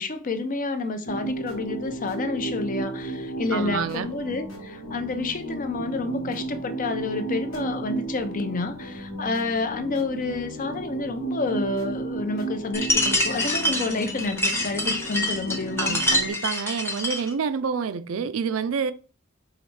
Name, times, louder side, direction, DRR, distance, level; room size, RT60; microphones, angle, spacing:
voice 1, 0.0-16.0, left 3 dB, 40° left, 0.5 m, -29 dB
sound 1, 1.1-16.3, right 2 dB, 85° left, 1.2 m, -34 dB
voice 2, 3.5-4.1 15.8-18.9, right 6 dB, 70° right, 0.4 m, -28 dB
sound 2, 12.7-17.3, left 1 dB, 10° left, 0.8 m, -26 dB
4.7 x 3.0 x 3.2 m
head